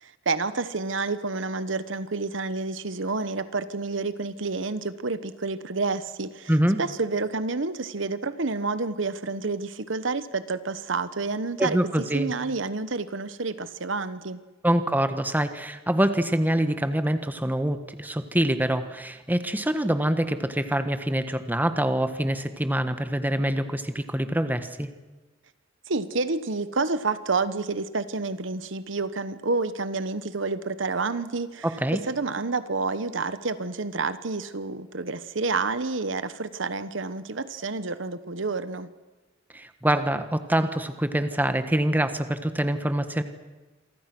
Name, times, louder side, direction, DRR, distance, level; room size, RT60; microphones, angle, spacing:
voice 1, 0.0-6.5 6.8-11.8 12.1-14.4 25.9-31.7 32.1-38.9, right 3 dB, 70° right, 13 dB, 1.1 m, -29 dB
voice 2, 6.5-6.8 11.6-12.3 14.6-24.9 31.6-32.0 39.5-43.2, right 1 dB, 10° right, 9 dB, 1.5 m, -25 dB
27.5 x 24.0 x 6.1 m, 1.2 s
head